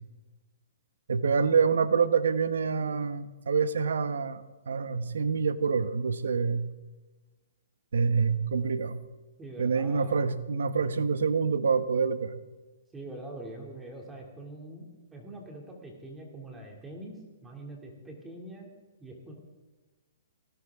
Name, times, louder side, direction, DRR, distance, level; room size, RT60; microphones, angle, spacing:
voice 1, 1.1-6.6 7.9-9.0 9.6-12.3, right 5 dB, 85° right, 13 dB, 1.1 m, -26 dB
voice 2, 9.4-10.2 12.9-18.7 19.0-19.3, right 1 dB, 10° right, 0 dB, 2.6 m, -44 dB
18.5 x 18.0 x 3.6 m, 1.2 s
hypercardioid pair, 150°, 0 cm